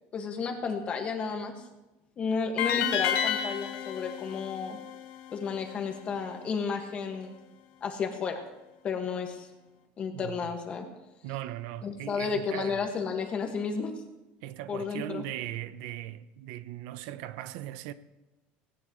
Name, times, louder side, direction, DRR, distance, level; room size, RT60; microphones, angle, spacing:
voice 1, 0.1-1.6 2.2-4.8 5.3-7.3 7.8-8.4 8.8-9.5 10.0-10.9 11.8-14.0 14.7-15.2, left 5 dB, 25° left, 1.9 m, -32 dB
sound 1, 2.6-5.7, left 9 dB, 65° left, 1.7 m, -31 dB
voice 2, 10.1-10.5 11.2-12.8 14.4-17.9, right 13 dB, 70° right, 0.8 m, -38 dB
19.0 x 18.0 x 3.2 m
cardioid pair, 175°, 5 cm